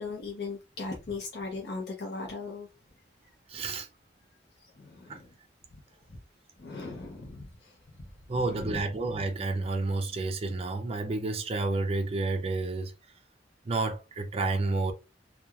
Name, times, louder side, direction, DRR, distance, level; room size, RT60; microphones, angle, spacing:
voice 1, 0.0-2.7 4.8-5.3 5.7-5.8 6.6-8.1 8.4-8.8, left 3 dB, 65° left, 0.7 m, -38 dB
voice 2, 3.5-3.9 5.1-5.2 8.3-12.9 13.6-14.9, right 3 dB, 35° right, 0.5 m, -30 dB
2.9 x 2.3 x 2.3 m
head